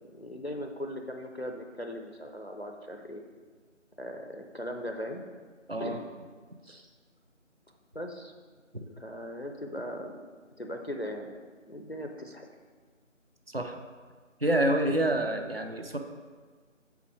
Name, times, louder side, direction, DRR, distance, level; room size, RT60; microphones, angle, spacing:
voice 1, 0.0-3.2 4.0-5.2 5.8-6.0 6.6-6.9 7.9-8.3 8.9-10.2 10.6-11.4 11.7-12.5, equal, 55° left, 4 dB, 0.6 m, -39 dB
voice 2, 5.7-6.0 8.7-8.8 13.5-13.8 14.4-16.0, right 1 dB, 50° right, 5 dB, 0.5 m, -27 dB
7.0 x 4.7 x 4.7 m, 1.5 s
figure-of-eight pair, 180°, 39 cm